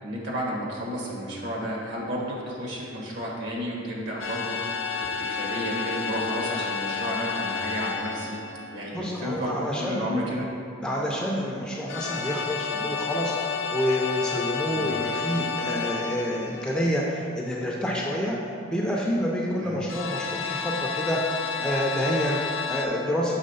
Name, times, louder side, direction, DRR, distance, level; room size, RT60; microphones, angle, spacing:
voice 1, 0.0-8.4 8.7-9.5 9.8-10.5 14.7-14.9 19.6-19.8, equal, 60° right, -3 dB, 1.3 m, -32 dB
sound 1, 4.2-9.1 11.9-17.0 19.9-22.9, left 5 dB, 60° left, 0.5 m, -31 dB
voice 2, 8.9-10.0 10.8-13.3 13.7-18.4 18.7-23.4, equal, 5° left, -3 dB, 0.4 m, -28 dB
6.4 x 3.5 x 5.4 m, 2.5 s
head